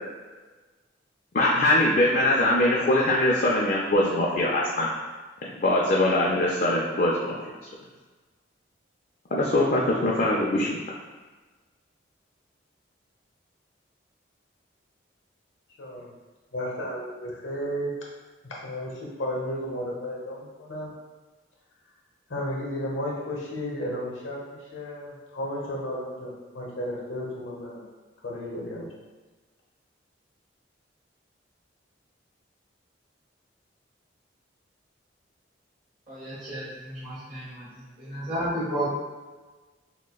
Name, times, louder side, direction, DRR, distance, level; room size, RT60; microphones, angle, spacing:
voice 1, 1.3-4.9 5.5-7.4 9.3-10.7, left 1 dB, 45° left, -4 dB, 0.4 m, -22 dB
voice 2, 15.8-16.1 16.5-17.9 18.4-18.9 19.2-20.9 22.3-27.8 28.2-28.9, equal, 85° left, -3 dB, 1.0 m, -33 dB
voice 3, 36.1-37.7 38.0-38.8, right 1 dB, 40° right, -14 dB, 1.4 m, -32 dB
6.1 x 2.2 x 2.3 m, 1.3 s
head